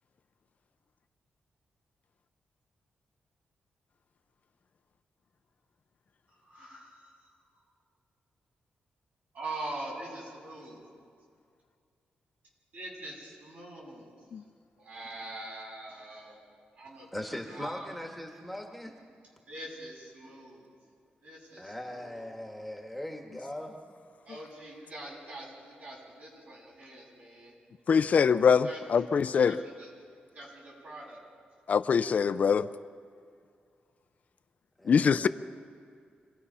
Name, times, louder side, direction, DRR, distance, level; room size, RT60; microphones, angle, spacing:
voice 1, 6.4-7.3 9.3-10.8 12.7-14.1 14.8-16.4 16.8-17.1 17.5-17.8 19.5-20.7 21.2-22.2 24.2-27.6 28.6-28.8 29.3-29.9 30.3-31.2, right 2 dB, 55° right, -3 dB, 7.7 m, -43 dB
voice 2, 17.1-19.0 21.6-23.8 34.8-35.3, left 1 dB, ahead, 1 dB, 1.5 m, -40 dB
voice 3, 27.9-29.6 31.7-32.7 34.9-35.3, left 6 dB, 50° left, 12 dB, 0.5 m, -23 dB
26.5 x 19.0 x 5.7 m, 2.3 s
wide cardioid pair, 150°, 3 cm